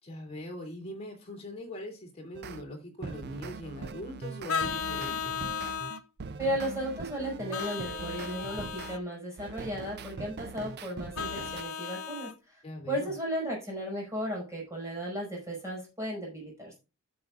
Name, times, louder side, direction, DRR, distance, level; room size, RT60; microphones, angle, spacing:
voice 1, 0.0-5.4 12.6-13.1, left 1 dB, 25° left, 1 dB, 2.8 m, -41 dB
sound 1, 2.3-2.6 3.0-9.0 9.4-11.6, right 4 dB, 45° right, 0.5 m, -41 dB
Vehicle horn car horn honking, 4.5-6.0 7.5-9.0 11.1-12.3, left 7 dB, 70° left, 0.6 m, -35 dB
voice 2, 6.4-12.6 12.9-16.8, equal, 15° right, -3 dB, 5.4 m, -35 dB
14.0 x 7.0 x 2.4 m, 0.29 s
head